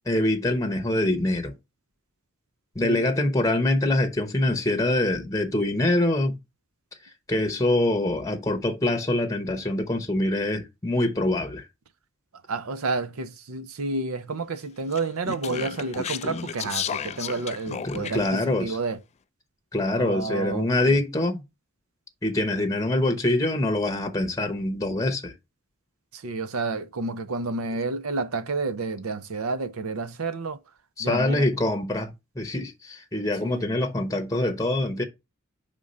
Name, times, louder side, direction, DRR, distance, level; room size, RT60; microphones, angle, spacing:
voice 1, 0.1-1.5 2.7-6.4 7.0-11.7 17.8-18.8 19.7-21.4 22.2-25.3 31.0-35.0, left 1 dB, 15° left, 0.8 m, -24 dB
voice 2, 12.5-19.0 20.0-21.0 26.1-30.6 31.0-31.5 33.4-33.7, right 3 dB, 85° right, 0.7 m, -30 dB
Speech, 14.9-18.4, left 7 dB, 30° left, 0.3 m, -33 dB
5.1 x 3.6 x 5.3 m
head